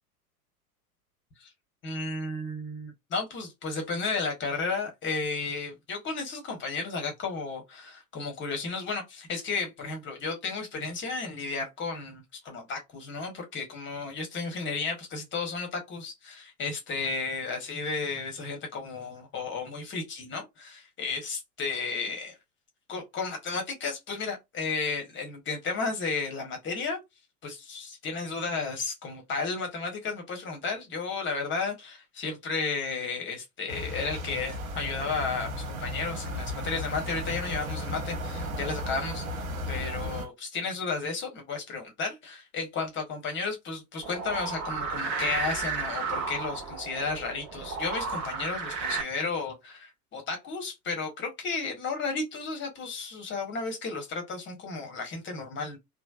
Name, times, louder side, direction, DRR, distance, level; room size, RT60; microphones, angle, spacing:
voice 1, 1.8-22.3 22.9-27.0 27.4-55.8, left 4 dB, 25° left, 1.2 m, -33 dB
sound 1, 33.7-40.3, left 1 dB, 65° right, 1.0 m, -35 dB
sound 2, 44.0-49.0, right 5 dB, 40° right, 1.0 m, -33 dB
3.2 x 2.1 x 2.3 m
figure-of-eight pair, 85°, 45 cm